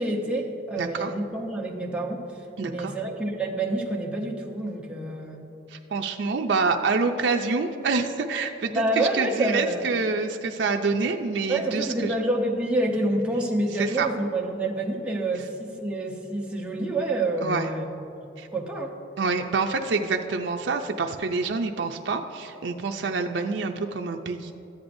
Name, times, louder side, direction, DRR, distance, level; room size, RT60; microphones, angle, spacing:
voice 1, 0.0-2.2 2.6-5.4 8.7-9.9 11.5-17.9 18.5-18.9, right 2 dB, 5° right, -2 dB, 1.0 m, -27 dB
voice 2, 0.8-1.1 2.6-2.9 5.7-12.1 13.8-14.1 17.4-17.7 18.4-18.5 19.2-24.5, right 4 dB, 80° right, 4 dB, 0.5 m, -27 dB
13.5 x 9.5 x 2.6 m, 2.9 s
head